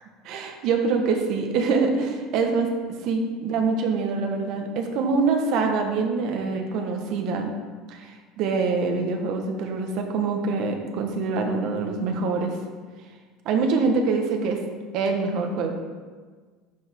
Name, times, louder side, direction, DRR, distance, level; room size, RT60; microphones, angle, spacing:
voice 1, 0.2-2.7 3.0-7.5 7.9-12.5 13.4-14.6 14.9-15.7, right 4 dB, 50° right, 3 dB, 1.1 m, -25 dB
12.5 x 4.7 x 3.6 m, 1.5 s
cardioid pair, 170°, 0 cm